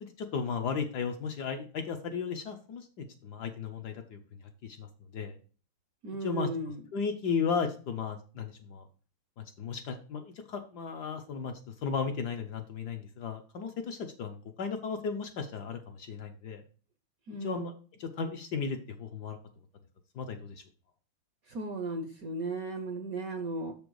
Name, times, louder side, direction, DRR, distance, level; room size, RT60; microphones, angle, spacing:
voice 1, 0.0-4.2 4.6-5.4 6.2-6.5 6.9-8.9 9.4-11.5 11.8-16.6 17.4-17.7 18.0-19.4 20.1-20.6, left 5 dB, 65° left, 5 dB, 1.2 m, -35 dB
voice 2, 6.0-6.8 17.3-17.6 21.5-23.7, right 2 dB, 60° right, 7 dB, 0.9 m, -36 dB
6.9 x 5.2 x 4.6 m, 0.39 s
omnidirectional pair, 2.3 m